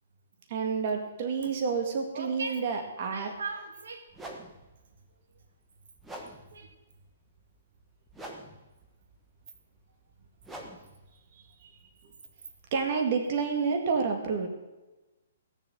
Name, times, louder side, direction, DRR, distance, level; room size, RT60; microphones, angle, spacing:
voice 1, 0.5-3.3 11.6-11.7 12.0-12.1 12.7-14.5, right 5 dB, 35° right, 3 dB, 2.0 m, -29 dB
voice 2, 2.1-4.1 6.5-6.7, right 4 dB, 80° right, 6 dB, 2.2 m, -39 dB
sound 1, 3.3-3.5 4.1-12.9, right 1 dB, 5° right, 1.3 m, -48 dB
16.5 x 7.2 x 7.7 m, 1.1 s
hypercardioid pair, 165°, 0 cm